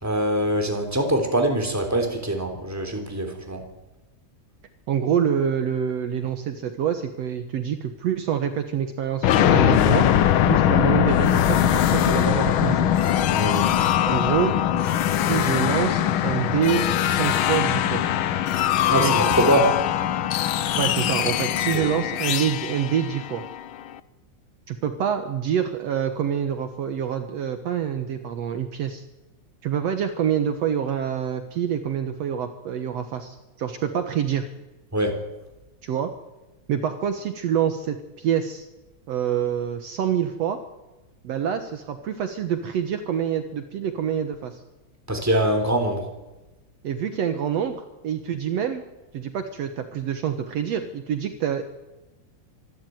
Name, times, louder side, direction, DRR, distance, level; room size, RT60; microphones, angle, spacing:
voice 1, 0.0-3.7 13.3-13.7 18.9-19.8 21.7-21.9 34.9-35.2 45.1-46.1, right 1 dB, 5° right, 3 dB, 3.2 m, -23 dB
voice 2, 4.9-10.1 10.5-12.9 14.1-14.6 15.3-18.0 19.0-19.3 20.8-23.4 24.7-29.0 29.6-34.5 35.8-36.1 36.7-38.7 39.1-40.6 41.2-44.6 46.8-48.8 49.1-51.6, right 8 dB, 65° right, 8 dB, 2.2 m, -26 dB
sound 1, 9.2-23.9, left 11 dB, 80° left, 1.1 m, -21 dB
25.5 x 12.0 x 9.3 m, 1.0 s
omnidirectional pair, 3.4 m